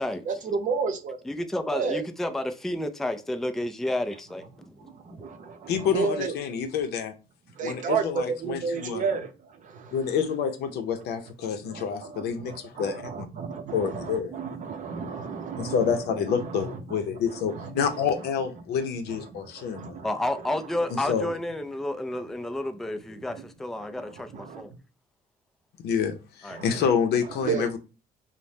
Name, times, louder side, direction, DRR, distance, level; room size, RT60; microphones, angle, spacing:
voice 1, 0.3-1.2 1.7-2.0 5.6-6.3 7.6-8.0 8.4-9.3 11.7-11.8 12.1-17.0 17.3-18.3 19.1-19.2 19.7-20.1 20.4-20.6 20.9-21.2 24.3-24.6 26.5-26.9 27.3-27.7, right 5 dB, 50° right, 0.6 m, -32 dB
voice 2, 1.3-4.4 4.8-4.9 5.2-5.3 20.0-24.7 26.4-26.6, left 1 dB, ahead, 0.3 m, -31 dB
voice 3, 5.7-7.1 7.6-9.0 9.9-13.3 13.7-14.3 15.6-20.0 20.9-21.3 25.8-27.8, left 7 dB, 75° left, 0.6 m, -28 dB
2.7 x 2.1 x 3.2 m
cardioid pair, 110°, 17 cm